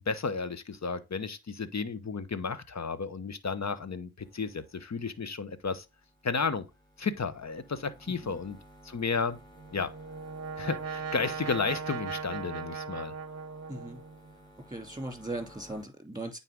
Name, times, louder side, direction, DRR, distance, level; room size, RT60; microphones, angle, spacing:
voice 1, 0.1-5.8 6.2-6.6 7.0-8.6 8.8-9.4 9.7-9.9 10.6-13.1, left 5 dB, 45° left, 0.9 m, -33 dB
sound 1, 4.2-15.8, right 1 dB, 10° left, 3.5 m, -56 dB
Brass instrument, 9.5-14.3, right 5 dB, 40° right, 0.8 m, -38 dB
voice 2, 13.7-14.0 14.7-16.4, right 2 dB, 10° right, 2.7 m, -38 dB
9.1 x 4.2 x 3.6 m
cardioid pair, 40°, 37 cm